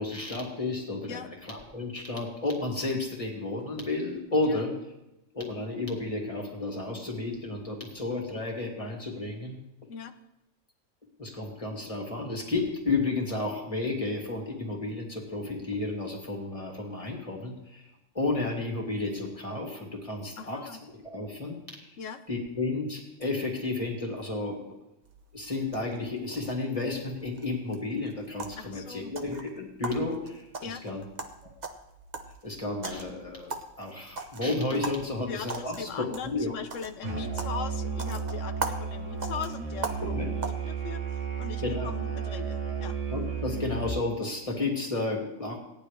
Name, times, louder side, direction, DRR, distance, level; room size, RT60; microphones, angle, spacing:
voice 1, 0.0-4.8 5.3-9.6 11.2-17.9 18.1-21.8 22.3-24.6 25.3-31.0 32.4-36.6 40.1-40.3 41.6-41.9 43.1-45.6, left 2 dB, 25° left, 0 dB, 2.3 m, -32 dB
voice 2, 20.4-20.8 22.0-22.2 28.6-29.1 30.6-30.8 34.7-34.8 35.3-40.2 40.4-43.0, left 6 dB, 80° left, 9 dB, 1.1 m, -40 dB
sound 1, 25.0-40.5, right 3 dB, 35° right, 1.0 m, -41 dB
Musical instrument, 37.0-44.1, right 6 dB, 70° right, 1.6 m, -33 dB
17.0 x 10.0 x 3.3 m, 0.92 s
omnidirectional pair, 1.3 m